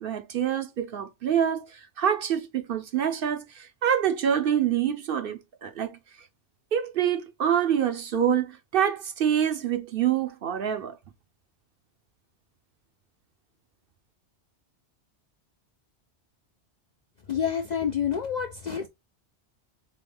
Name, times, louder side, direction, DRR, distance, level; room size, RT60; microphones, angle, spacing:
voice 1, 0.0-6.0 6.7-11.0, right 9 dB, 60° right, 0.8 m, -26 dB
voice 2, 17.3-18.9, left 8 dB, 60° left, 0.4 m, -28 dB
3.8 x 3.7 x 3.4 m
omnidirectional pair, 1.2 m